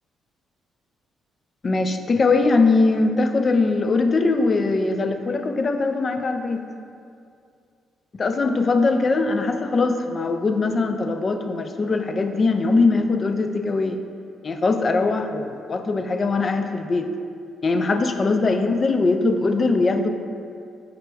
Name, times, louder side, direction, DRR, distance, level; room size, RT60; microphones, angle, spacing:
voice 1, 1.6-6.6 8.1-14.0 14.4-17.1 17.6-20.1, left 3 dB, 40° left, 7 dB, 0.3 m, -21 dB
5.0 x 2.2 x 4.5 m, 2.4 s
cardioid pair, 90°, 0 cm